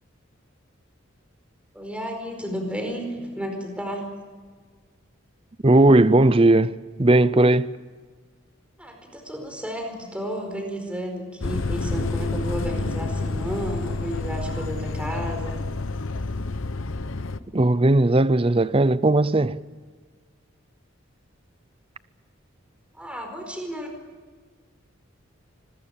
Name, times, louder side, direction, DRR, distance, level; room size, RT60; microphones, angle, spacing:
voice 1, 1.7-4.1 8.8-15.6 23.0-23.9, equal, 5° right, 4.7 m, -32 dB
voice 2, 5.6-7.7 17.5-19.6, right 2 dB, 25° right, 0.6 m, -17 dB
sound 1, 11.4-17.4, left 3 dB, 70° left, 1.0 m, -29 dB
26.0 x 21.5 x 7.3 m
head